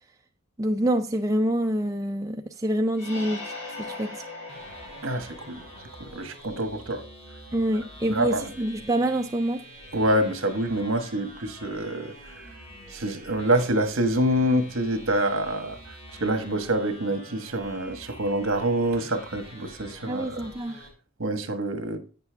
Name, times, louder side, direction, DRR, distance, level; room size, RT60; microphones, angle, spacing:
voice 1, 0.6-4.2 7.5-9.6 20.1-20.8, right 1 dB, 15° right, 0.4 m, -26 dB
sound 1, 2.9-6.5, left 2 dB, 80° left, 4.1 m, -40 dB
sound 2, 4.5-20.9, equal, 30° left, 2.7 m, -46 dB
voice 2, 5.0-5.6 6.1-7.0 8.1-8.5 9.9-12.1 12.9-15.8 16.2-20.4 21.2-22.0, right 1 dB, 65° right, 1.4 m, -26 dB
8.8 x 6.8 x 3.4 m
head